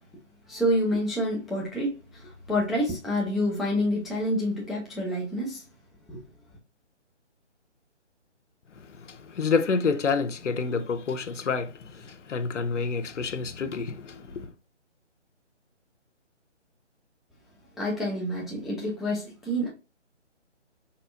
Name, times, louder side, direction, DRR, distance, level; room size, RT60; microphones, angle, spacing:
voice 1, 0.5-5.6 6.1-6.2 17.8-19.7, equal, ahead, 0.3 m, -28 dB
voice 2, 9.0-14.5, left 5 dB, 80° left, 0.7 m, -28 dB
4.0 x 2.2 x 2.4 m
hypercardioid pair, 165°, 36 cm